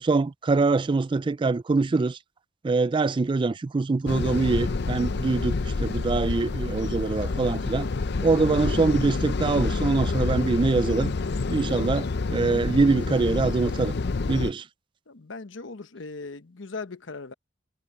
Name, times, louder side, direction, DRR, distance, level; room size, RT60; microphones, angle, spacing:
voice 1, 0.0-2.2 2.6-7.9 8.2-11.1 11.5-14.0 14.3-14.6, right 3 dB, 25° right, 0.3 m, -24 dB
sound 1, 4.1-14.5, left 3 dB, 60° left, 0.6 m, -28 dB
voice 2, 15.1-17.3, left 3 dB, 75° left, 1.0 m, -38 dB
head